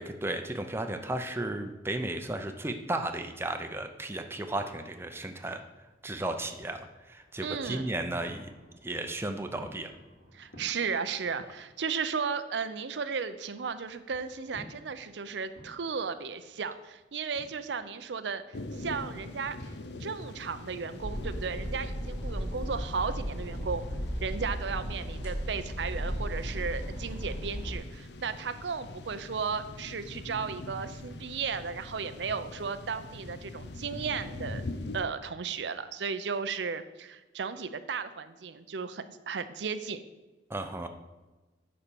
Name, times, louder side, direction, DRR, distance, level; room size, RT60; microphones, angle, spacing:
voice 1, 0.0-5.6 6.0-8.5 8.8-9.9 40.5-40.9, right 1 dB, 15° right, 6 dB, 0.6 m, -34 dB
sound 1, 5.7-12.0 12.3-19.8, equal, 90° left, 2.9 m, -54 dB
voice 2, 7.4-7.9 10.3-19.6 20.0-23.8 24.2-34.6 34.9-40.0, right 5 dB, 85° right, 11 dB, 0.6 m, -35 dB
sound 2, 18.5-35.0, left 2 dB, 75° left, 0.7 m, -43 dB
sound 3, 21.0-27.7, equal, 15° left, 2.3 m, -35 dB
10.0 x 4.3 x 6.9 m, 1.2 s
head